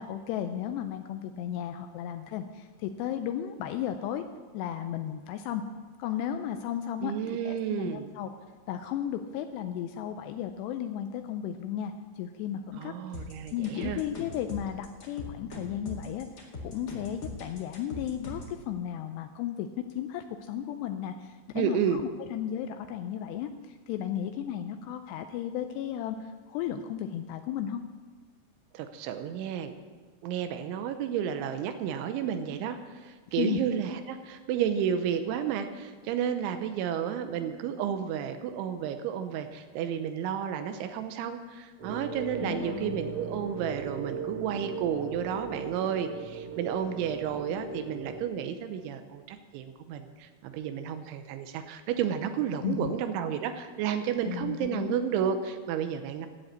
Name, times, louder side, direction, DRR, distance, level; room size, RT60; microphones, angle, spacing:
voice 1, 0.0-4.2 4.5-5.6 6.0-7.1 7.4-8.3 8.7-13.2 13.5-16.3 16.6-27.8 33.4-33.6 42.4-43.0 52.6-52.9 54.2-55.0, left 10 dB, 90° left, 7 dB, 2.4 m, -34 dB
voice 2, 7.0-8.1 12.7-14.0 21.5-22.0 28.7-29.7 30.2-56.3, right 8 dB, 90° right, 8 dB, 3.1 m, -32 dB
sound 1, 13.1-18.6, left 2 dB, 65° left, 1.0 m, -41 dB
sound 2, 41.8-48.3, right 4 dB, 40° right, 2.2 m, -38 dB
12.0 x 7.9 x 8.2 m, 1.5 s
omnidirectional pair, 5.4 m